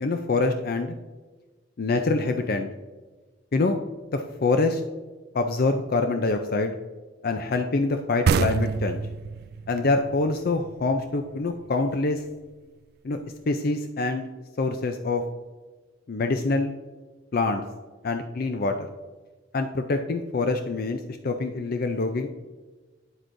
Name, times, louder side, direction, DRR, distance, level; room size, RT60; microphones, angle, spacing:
voice 1, 0.0-0.9 1.8-2.7 3.5-3.8 4.1-4.8 5.3-6.7 7.2-9.0 9.7-12.2 13.0-13.2 13.5-14.3 14.6-15.2 16.1-16.8 17.3-17.6 18.0-18.7 19.5-22.3, left 3 dB, 55° left, 6 dB, 0.5 m, -25 dB
sound 1, 8.3-11.7, right 5 dB, 55° right, 0.3 m, -27 dB
9.1 x 7.9 x 2.6 m, 1.3 s
head